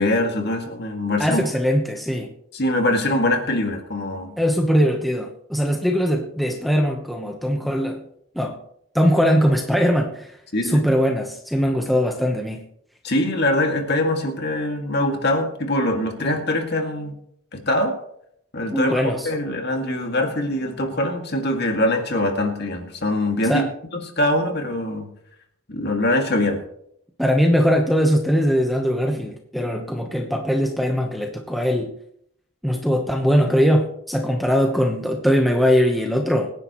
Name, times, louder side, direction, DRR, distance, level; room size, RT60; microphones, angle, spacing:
voice 1, 0.0-1.4 2.5-4.4 10.5-10.8 13.0-17.2 17.5-18.0 18.5-23.7 24.2-25.1 25.7-26.6, left 1 dB, 50° left, 3 dB, 2.2 m, -23 dB
voice 2, 1.2-2.3 4.4-8.0 8.3-8.6 8.9-12.6 18.7-19.3 23.4-23.7 27.2-31.9 32.6-36.5, equal, ahead, 1 dB, 1.0 m, -21 dB
25.5 x 10.5 x 3.1 m, 0.72 s
head